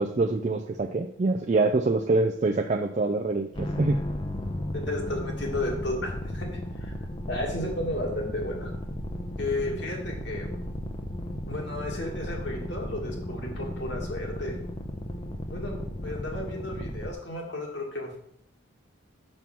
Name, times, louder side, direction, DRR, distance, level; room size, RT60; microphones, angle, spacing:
voice 1, 0.0-4.0, right 3 dB, 35° right, 6 dB, 0.4 m, -25 dB
sound 1, 3.5-17.1, left 1 dB, 25° left, 0.6 m, -35 dB
voice 2, 4.7-6.5 6.8-6.9 7.3-8.7 9.4-10.5 11.5-14.6 15.5-18.2, left 1 dB, 60° left, -1 dB, 2.0 m, -33 dB
6.0 x 5.4 x 5.9 m, 0.70 s
head